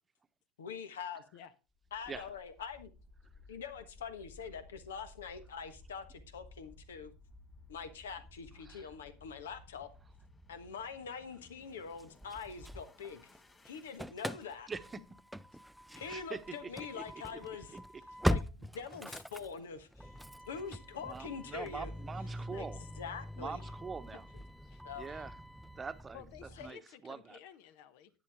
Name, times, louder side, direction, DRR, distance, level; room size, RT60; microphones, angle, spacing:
voice 1, 0.6-1.2 1.9-2.9 3.5-7.1 7.7-9.9 10.5-13.3 13.6-14.7 15.9-17.8 18.3-20.1 20.4-21.9 22.5-22.7 23.0-23.6 24.8-25.2, left 6 dB, 85° left, 10 dB, 1.3 m, -44 dB
sound 1, 1.8-14.0, left 2 dB, 20° left, 2.7 m, -58 dB
Engine starting / Slam, 12.0-13.4 13.7-26.7, equal, ahead, 0.4 m, -41 dB
voice 2, 14.7-15.0 16.1-17.0 17.7-17.8 21.0-22.8 23.3-24.2 25.0-25.4 25.8-26.2 26.6-26.8 27.0-27.4, right 5 dB, 20° right, 12 dB, 0.9 m, -43 dB
voice 3, 24.1-24.8 26.1-28.1, left 9 dB, 65° left, 12 dB, 1.1 m, -53 dB
11.0 x 9.2 x 3.6 m, 0.31 s
hypercardioid pair, 90°, 0 cm